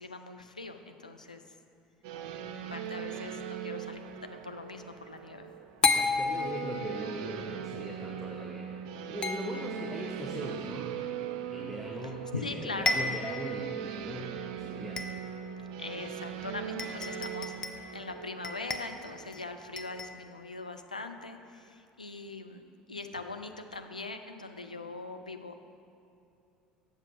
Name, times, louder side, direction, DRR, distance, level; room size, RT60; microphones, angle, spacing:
voice 1, 0.0-1.4 2.5-5.5 12.3-13.0 15.8-25.6, left 3 dB, 85° left, 6 dB, 0.4 m, -41 dB
sound 1, 2.0-20.1, right 9 dB, 60° right, 0.4 m, -40 dB
sound 2, 2.2-2.7 5.8-7.1 9.2-10.0 12.1-12.2 12.5-12.6 12.9-13.5 14.0-14.1 15.0-15.5 16.3-16.4 16.8-17.9 18.4-19.4 19.8-20.2, left 3 dB, 20° left, 0.6 m, -32 dB
voice 2, 5.9-8.8 9.1-11.0 11.5-15.1, equal, 5° right, -2 dB, 0.9 m, -40 dB
7.6 x 5.5 x 5.8 m, 2.7 s
figure-of-eight pair, 65°, 4 cm